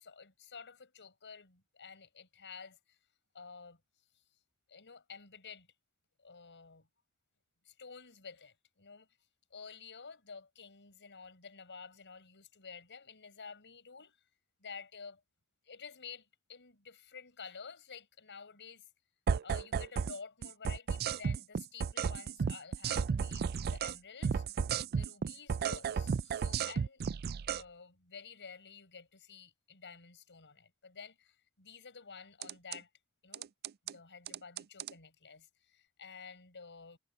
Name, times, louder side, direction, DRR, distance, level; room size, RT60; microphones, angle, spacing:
voice 1, 0.0-3.0 3.3-3.8 4.7-5.7 6.2-6.9 7.6-9.1 9.5-14.2 14.6-15.2 15.6-18.9 19.4-24.4 24.9-27.0 27.5-32.9 33.2-33.5 33.8-37.0, left 5 dB, 55° left, 6.3 m, -51 dB
sound 1, 19.3-20.2 20.4-24.0 24.2-27.6 32.4-32.8 33.3-33.9 34.3-34.9, right 6 dB, 45° right, 0.4 m, -33 dB
head